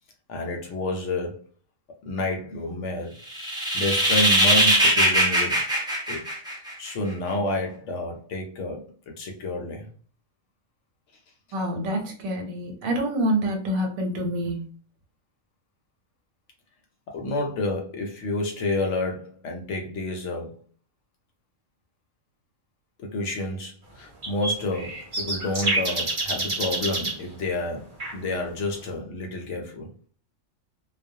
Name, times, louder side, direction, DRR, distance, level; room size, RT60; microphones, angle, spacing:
voice 1, 0.3-1.4 2.0-3.2 3.7-5.7 6.1-9.9 17.1-20.6 23.0-29.9, left 2 dB, 70° left, 0.8 m, -30 dB
sound 1, 3.3-6.9, right 1 dB, 5° right, 0.3 m, -21 dB
voice 2, 11.5-14.7, right 1 dB, 90° right, 1.2 m, -27 dB
sound 2, 24.2-27.2 28.0-28.1, right 2 dB, 40° right, 0.9 m, -27 dB
2.3 x 2.1 x 2.7 m
omnidirectional pair, 1.4 m